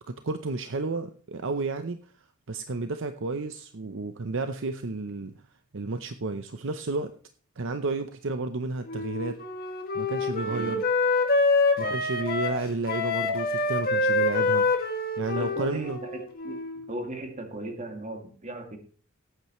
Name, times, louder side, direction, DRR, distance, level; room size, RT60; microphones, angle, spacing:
voice 1, 0.2-2.0 2.5-5.4 5.7-7.1 7.6-9.4 9.9-10.8 11.8-14.7 15.2-16.0, right 3 dB, 65° right, 9 dB, 0.7 m, -31 dB
Wind instrument woodwind instrument, 8.9-16.9, left 3 dB, 45° left, 2.0 m, -26 dB
voice 2, 10.5-10.8 11.8-12.0 15.4-16.6 16.9-18.8, right 2 dB, 35° right, 4 dB, 2.3 m, -37 dB
17.5 x 8.9 x 3.1 m, 0.42 s
head